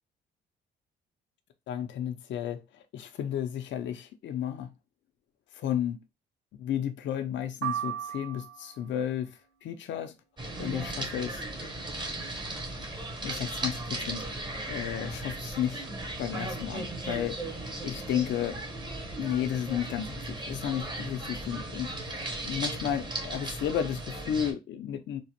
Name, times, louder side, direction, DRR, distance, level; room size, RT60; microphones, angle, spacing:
voice 1, 1.7-2.6 2.9-4.7 5.5-6.0 6.6-10.1 10.6-11.4 13.2-14.3 14.7-15.9 16.2-18.6 19.2-25.2, left 10 dB, 70° left, 0.5 m, -33 dB
sound 1, 7.6-8.9, right 11 dB, 60° right, 1.5 m, -35 dB
sound 2, 10.4-24.5, right 2 dB, 25° right, 0.9 m, -37 dB
3.0 x 2.0 x 2.8 m
cardioid pair, 90°, 20 cm